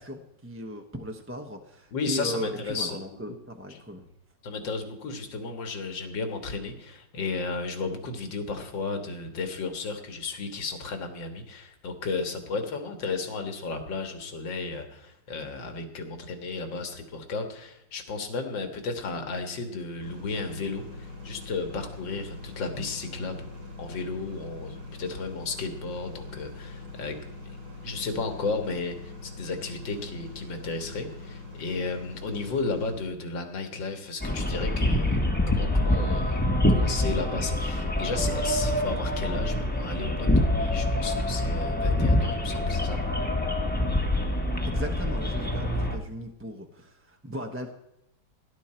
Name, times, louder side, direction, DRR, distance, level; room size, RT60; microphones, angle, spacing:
voice 1, 0.0-4.1 44.6-47.7, equal, 10° right, 4 dB, 0.7 m, -37 dB
voice 2, 1.9-3.0 3.7-3.8 4.4-23.5 23.8-27.2 27.8-35.2 35.5-43.0, left 3 dB, 85° left, 6 dB, 2.3 m, -34 dB
sound 1, 20.0-33.1, left 3 dB, 55° right, 7.5 m, -43 dB
sound 2, 34.2-46.0, left 1 dB, 5° left, 1.0 m, -25 dB
17.0 x 11.0 x 4.4 m, 0.83 s
omnidirectional pair, 2.0 m